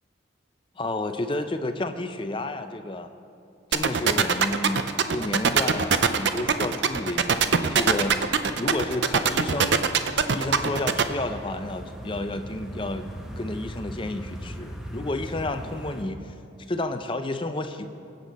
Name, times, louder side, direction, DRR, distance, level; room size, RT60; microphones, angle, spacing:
voice 1, 0.8-3.1 3.7-8.3 8.6-9.8 10.3-13.1 13.4-16.3 16.7-17.9, left 2 dB, 25° left, 8 dB, 0.5 m, -31 dB
sound 1, 3.7-11.0, right 6 dB, 60° right, 0.6 m, -21 dB
sound 2, 10.4-16.0, equal, 5° right, 0.9 m, -39 dB
20.5 x 8.3 x 4.2 m, 2.6 s
head